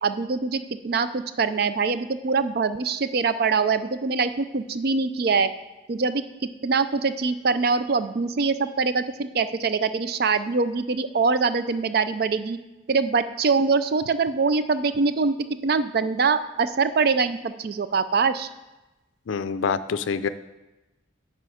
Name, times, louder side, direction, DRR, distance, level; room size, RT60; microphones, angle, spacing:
voice 1, 0.0-5.5 5.9-6.2 6.6-12.6 12.9-15.4 15.6-18.5, right 4 dB, 50° right, 12 dB, 0.4 m, -23 dB
voice 2, 19.3-20.3, left 5 dB, 75° left, 13 dB, 0.4 m, -26 dB
9.3 x 5.6 x 4.9 m, 1.1 s
head